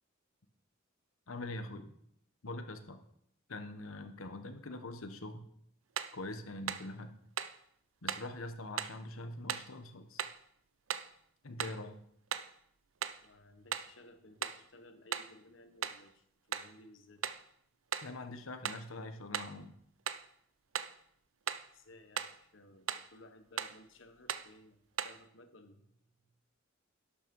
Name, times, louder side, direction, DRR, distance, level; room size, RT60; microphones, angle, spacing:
voice 1, 1.3-1.9 2.4-3.0 3.5-5.5 6.1-7.2 8.0-10.3 11.4-12.0 18.0-19.8, left 2 dB, 85° left, 8 dB, 1.3 m, -43 dB
sound 1, 6.0-6.2 6.7-6.9 7.4-7.6 8.1-8.3 8.8-9.0 9.5-9.7 10.2-10.4 10.9-11.2 11.6-11.8 12.3-12.5 13.0-13.3 13.7-13.9 14.4-14.7 15.1-15.4 15.8-16.1 16.5-16.8 17.2-17.5 17.9-18.2 18.7-18.9 19.3-19.6 20.1-20.3 20.8-21.0 21.5-21.7 22.2-22.4 22.9-23.1 23.6-23.8 24.3-24.5 25.0-25.2, right 9 dB, 75° right, 0.6 m, -38 dB
voice 2, 13.2-17.2 21.7-26.3, left 1 dB, 65° left, 8 dB, 1.4 m, -58 dB
11.5 x 8.5 x 5.5 m, 0.72 s
head